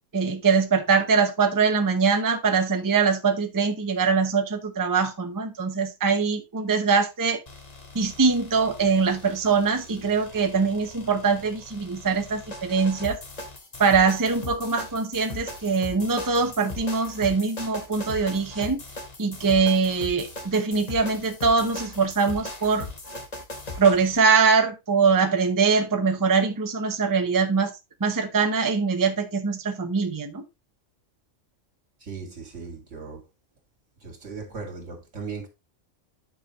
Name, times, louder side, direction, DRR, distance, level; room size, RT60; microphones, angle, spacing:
voice 1, 0.1-7.4 7.9-13.2 13.8-18.8 19.2-22.9 23.8-27.7 28.0-30.4, right 5 dB, 20° right, 0.7 m, -23 dB
sound 1, 7.5-24.2, left 2 dB, 35° left, 1.2 m, -39 dB
voice 2, 32.0-33.2 34.0-35.5, right 4 dB, 75° right, 2.6 m, -37 dB
9.5 x 5.3 x 3.0 m
omnidirectional pair, 1.3 m